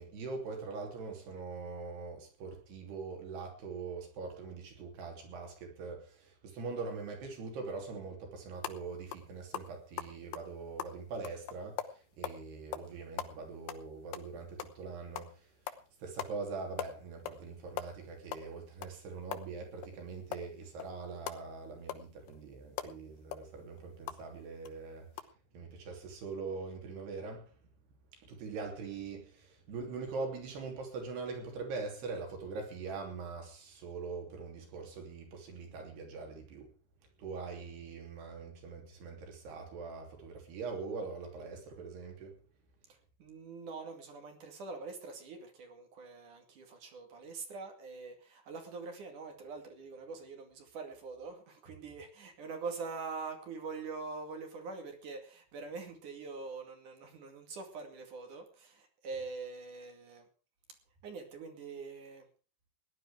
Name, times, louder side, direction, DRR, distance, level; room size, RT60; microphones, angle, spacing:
voice 1, 0.0-15.5 16.0-25.1 25.5-27.5 28.2-36.7 37.2-42.3, right 4 dB, 85° right, 5.1 m, -42 dB
sound 1, 8.6-8.8 9.1-9.3 9.5-12.4 12.7-12.9 13.2-14.8 15.2-15.3 15.6-15.8 16.2-16.3 16.6-17.4 17.7-19.9 20.3-24.2 24.6-24.7 25.1-25.2, left 11 dB, 75° left, 2.9 m, -41 dB
voice 2, 42.9-60.3 61.0-62.3, right 4 dB, 55° right, 3.7 m, -44 dB
18.0 x 11.0 x 4.9 m
omnidirectional pair, 4.6 m